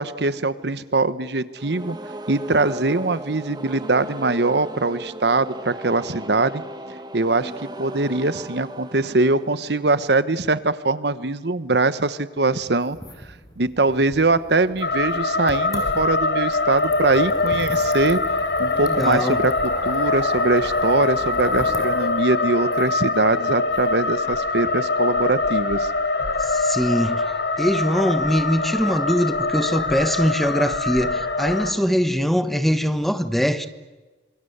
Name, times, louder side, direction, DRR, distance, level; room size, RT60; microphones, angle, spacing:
voice 1, 0.0-2.0 2.3-6.6 7.1-13.0 13.6-18.2 18.6-19.5 19.8-25.9, right 3 dB, 75° right, 1.2 m, -22 dB
sound 1, 1.5-10.4, right 1 dB, 25° right, 1.9 m, -37 dB
sound 2, 12.8-24.7, left 1 dB, 20° left, 5.1 m, -39 dB
sound 3, 14.8-31.7, left 3 dB, 80° left, 3.8 m, -23 dB
voice 2, 18.7-19.4 26.4-27.3 27.6-33.7, equal, ahead, 1.3 m, -22 dB
27.0 x 27.0 x 8.1 m
head